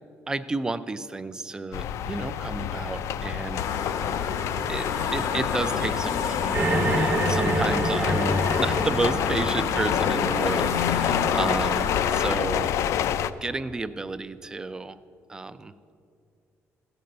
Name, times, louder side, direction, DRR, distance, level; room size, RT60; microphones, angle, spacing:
voice 1, 0.3-4.0 4.7-6.7 7.0-12.7 13.4-15.0 15.3-15.7, right 3 dB, 15° right, 14 dB, 0.3 m, -31 dB
sound 1, 1.7-13.3, left 9 dB, 65° left, 0.3 m, -28 dB
sound 2, 3.6-12.4, left 6 dB, 85° left, 0.8 m, -29 dB
sound 3, 6.5-12.1, right 2 dB, 40° right, 1.1 m, -28 dB
14.5 x 5.3 x 7.7 m, 2.4 s
cardioid pair, 170°, 5 cm